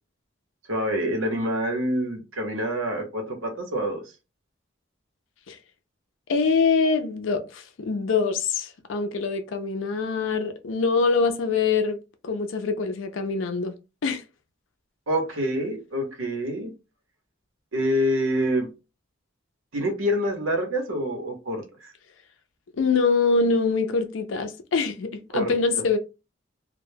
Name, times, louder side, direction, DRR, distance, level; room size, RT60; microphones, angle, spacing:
voice 1, 0.7-4.0 15.1-16.7 17.7-18.7 19.7-21.9 25.3-25.9, equal, 90° right, 0.8 m, -26 dB
voice 2, 6.3-12.0 12.2-13.7 14.0-14.2 22.8-26.0, left 4 dB, 80° left, 0.4 m, -24 dB
2.1 x 2.1 x 3.2 m
head